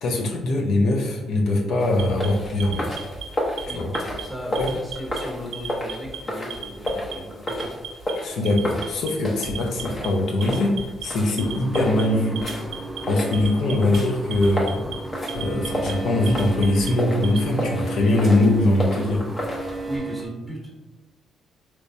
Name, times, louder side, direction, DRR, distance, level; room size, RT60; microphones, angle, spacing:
voice 1, 0.0-3.0 3.7-3.9 4.6-4.7 8.2-10.7 11.0-12.4 13.1-14.8 15.3-19.2, left 2 dB, 75° left, 0 dB, 0.6 m, -22 dB
sound 1, 1.8-20.0, left 1 dB, 35° left, 0.8 m, -32 dB
Alarm, 1.9-3.2 3.6-4.2 4.5-5.2 5.5-6.2 6.5-7.1 7.5-8.1 8.5-9.1 9.4-10.1 10.4-11.0 11.4-12.0 12.4-13.0 13.3-14.0 14.3-14.9 15.3-15.9 16.3-17.4, right 6 dB, 80° right, 0.5 m, -35 dB
voice 2, 3.6-8.1 19.8-20.7, equal, 5° left, -2 dB, 1.1 m, -37 dB
sound 2, 11.4-20.3, right 3 dB, 10° right, 0.4 m, -34 dB
3.3 x 3.0 x 2.6 m, 1.1 s
cardioid pair, 90°, 0 cm